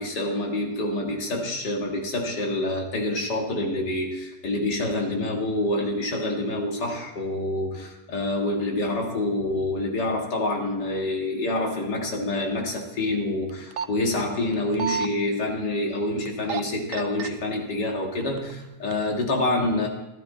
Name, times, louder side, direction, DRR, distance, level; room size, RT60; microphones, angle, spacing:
voice 1, 0.0-19.9, left 2 dB, 90° left, 1 dB, 2.5 m, -27 dB
sound 1, 13.5-13.9 14.5-15.1 16.3-16.6 16.9-17.3 18.0-18.5 18.9-19.0, right 6 dB, 65° right, 0.8 m, -29 dB
12.5 x 12.5 x 4.2 m, 0.99 s
omnidirectional pair, 1.8 m